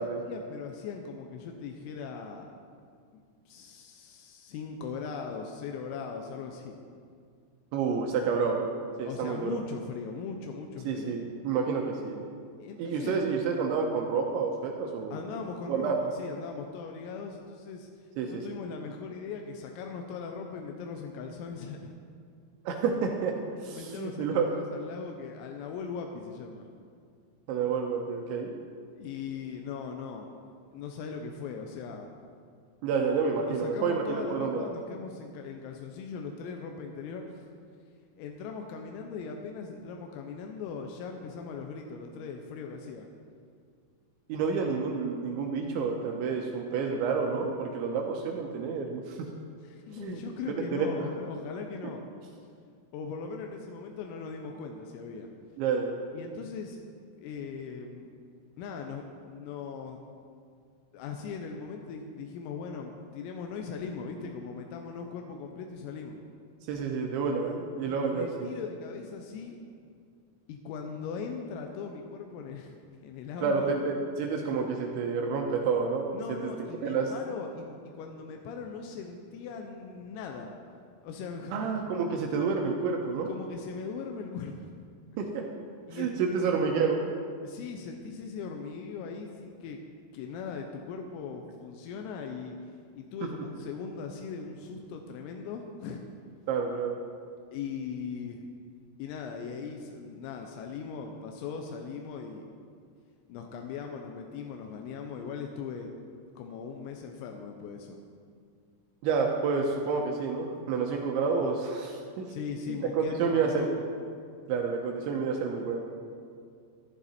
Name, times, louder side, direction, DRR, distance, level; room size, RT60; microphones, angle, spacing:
voice 1, 0.0-2.5 3.1-6.7 9.1-11.1 12.6-13.2 15.1-17.9 18.2-21.9 23.7-26.7 29.0-30.3 30.7-32.1 33.5-37.5 38.2-43.1 49.6-52.1 52.9-55.3 56.1-56.8 57.2-58.1 58.6-60.0 60.9-66.2 67.8-69.6 70.5-72.7 73.0-73.7 76.1-80.5 81.0-81.8 83.3-84.7 85.9-86.1 86.3-86.4 87.4-89.8 90.1-96.0 97.5-98.5 99.0-102.5 103.3-105.9 106.4-108.0 112.3-113.9, left 5 dB, 85° left, 3 dB, 3.5 m, -39 dB
voice 2, 7.7-8.7 9.0-9.6 10.8-12.3 12.8-15.2 15.7-16.0 18.2-18.3 22.7-23.3 23.6-24.5 27.5-28.5 32.8-34.7 44.3-49.3 50.0-50.9 55.6-56.0 66.7-68.5 73.4-76.5 76.8-77.1 81.5-83.3 85.2-85.4 85.9-87.1 96.5-97.0 109.0-112.3 112.7-113.7 114.5-115.8, right 5 dB, 75° right, 2 dB, 2.9 m, -29 dB
14.0 x 11.0 x 4.3 m, 2.2 s
omnidirectional pair, 5.9 m